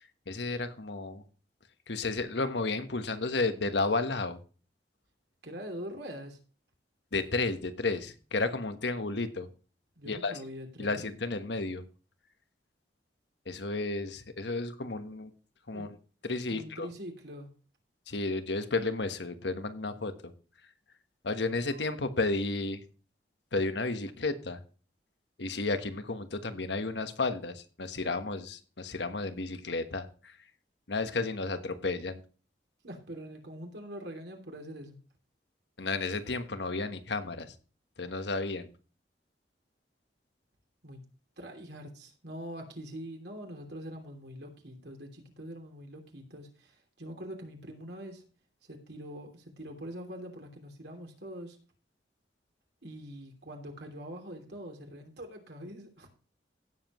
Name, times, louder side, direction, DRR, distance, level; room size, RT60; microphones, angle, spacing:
voice 1, 0.3-1.2 1.9-4.4 7.1-9.5 10.1-10.3 10.8-11.8 13.5-15.3 15.7-15.9 16.2-16.9 18.1-20.1 21.2-22.8 23.5-24.6 25.4-30.3 30.9-32.2 35.8-37.5 38.0-38.7, left 3 dB, 75° left, 9 dB, 1.3 m, -32 dB
voice 2, 5.4-6.4 10.0-11.0 15.7-15.9 16.5-17.5 32.8-35.0 40.8-41.0 41.4-48.2 48.6-51.6 52.8-56.1, equal, 65° right, 3 dB, 3.0 m, -44 dB
16.5 x 7.5 x 3.1 m, 0.37 s
head